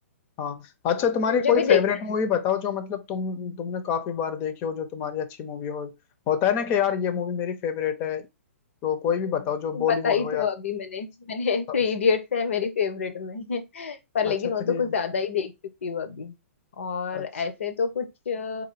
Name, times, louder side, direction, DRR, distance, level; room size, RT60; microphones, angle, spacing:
voice 1, 0.4-5.9 6.3-8.3 8.8-10.5 11.7-11.8 14.2-14.9 17.1-17.2, left 8 dB, 30° left, 0.7 m, -27 dB
voice 2, 1.3-1.8 9.7-15.5 15.8-16.3 16.8-18.7, left 6 dB, 60° left, 0.9 m, -27 dB
3.9 x 2.7 x 4.6 m
figure-of-eight pair, 115°, 8 cm